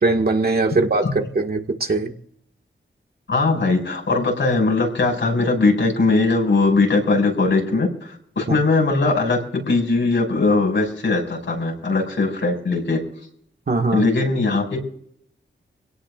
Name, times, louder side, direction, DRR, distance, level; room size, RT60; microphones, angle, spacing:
voice 1, 0.0-2.1 13.7-14.1, right 3 dB, 50° right, 3 dB, 1.9 m, -20 dB
voice 2, 3.3-9.4 9.7-13.0 13.9-14.8, left 3 dB, 75° left, 0 dB, 6.3 m, -20 dB
26.0 x 17.5 x 2.5 m, 0.67 s
cardioid pair, 75°, 19 cm